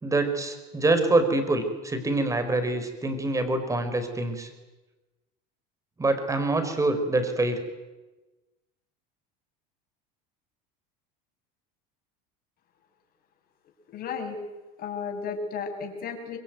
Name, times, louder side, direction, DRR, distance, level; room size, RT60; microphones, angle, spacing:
voice 1, 0.0-4.5 6.0-7.6, right 2 dB, 15° right, 9 dB, 4.7 m, -25 dB
voice 2, 13.9-14.4 14.8-16.4, left 5 dB, 45° left, 3 dB, 6.8 m, -33 dB
26.0 x 22.5 x 9.5 m, 1.1 s
supercardioid pair, 120°, 21 cm